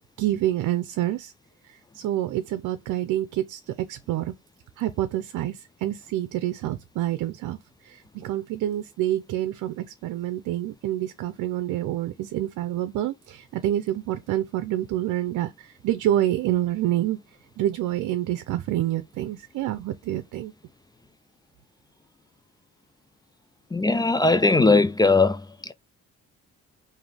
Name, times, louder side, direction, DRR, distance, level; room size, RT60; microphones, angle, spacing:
voice 1, 0.2-1.3 1.6-4.3 4.8-7.6 7.8-17.2 17.6-20.5, right 13 dB, 85° right, 0.6 m, -27 dB
voice 2, 23.7-25.4, left 3 dB, 15° left, 0.3 m, -19 dB
3.8 x 2.8 x 3.3 m
cardioid pair, 90°, 30 cm